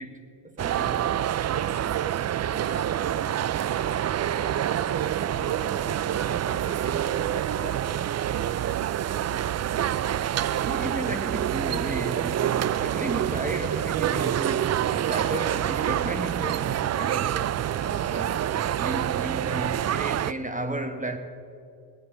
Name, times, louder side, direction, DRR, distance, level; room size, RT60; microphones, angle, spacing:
voice 1, 0.0-1.3 10.6-17.5 17.9-18.4 18.8-21.2, right 1 dB, 15° right, 1.6 m, -34 dB
sound 1, 0.6-20.3, right 11 dB, 35° right, 0.5 m, -27 dB
voice 2, 2.5-8.0 9.2-9.5 17.8-18.7, left 4 dB, 30° left, 1.4 m, -46 dB
22.5 x 9.9 x 3.9 m
supercardioid pair, 60°, 47 cm